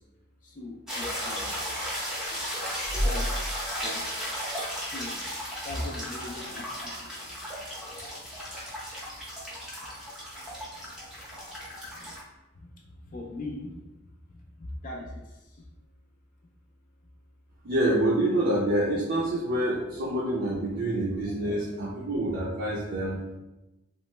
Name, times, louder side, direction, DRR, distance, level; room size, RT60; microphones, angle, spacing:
voice 1, 0.4-1.5 3.0-3.2 3.8-4.1 4.8-5.2 5.6-6.7 7.0-7.2 11.9-12.1 12.6-12.7 13.1-13.8 14.3-14.4 14.8-15.1, left 2 dB, 35° left, 0 dB, 0.4 m, -39 dB
sound 1, 0.9-12.2, equal, ahead, 0.6 m, -34 dB
voice 2, 17.6-23.4, right 1 dB, 50° right, -5 dB, 0.5 m, -27 dB
3.0 x 2.0 x 3.2 m, 1.0 s
head